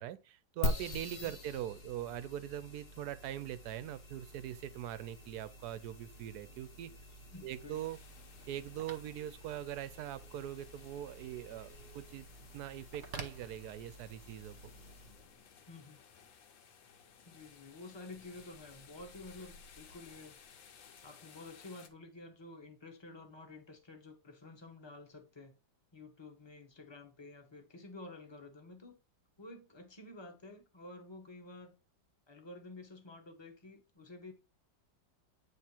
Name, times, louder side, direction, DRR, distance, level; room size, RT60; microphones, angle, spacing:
voice 1, 0.0-6.9 7.4-8.0 8.5-12.3 12.5-14.6, right 12 dB, 70° right, 0.9 m, -42 dB
sound 1, 0.6-15.3, left 2 dB, 40° left, 1.1 m, -45 dB
Telephone, 6.4-14.2, right 4 dB, 45° right, 1.0 m, -53 dB
voice 2, 7.3-7.8 15.7-16.0 17.2-20.4 21.0-25.6 25.9-29.0 29.4-31.7 32.3-34.3, left 2 dB, 20° left, 0.8 m, -51 dB
sound 2, 7.7-21.9, left 6 dB, 85° left, 1.7 m, -59 dB
8.7 x 3.4 x 4.4 m
omnidirectional pair, 2.0 m